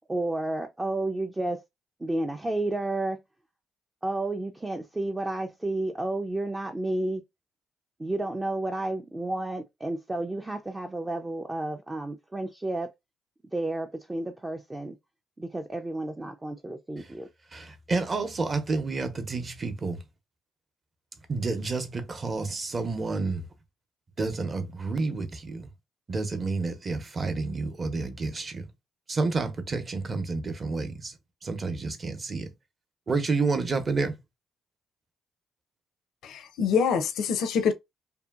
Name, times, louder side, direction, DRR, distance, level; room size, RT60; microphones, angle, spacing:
voice 1, 0.1-1.6 2.0-3.2 4.0-7.2 8.0-12.9 13.5-15.0 15.4-17.3, right 2 dB, 15° right, 0.3 m, -31 dB
voice 2, 17.5-20.0 21.3-23.5 24.2-25.7 26.1-28.7 29.1-31.2 31.4-32.5 33.1-34.2, right 3 dB, 35° right, 0.7 m, -29 dB
voice 3, 36.2-37.7, left 6 dB, 80° left, 0.5 m, -25 dB
2.7 x 2.5 x 2.3 m
cardioid pair, 90°, 0 cm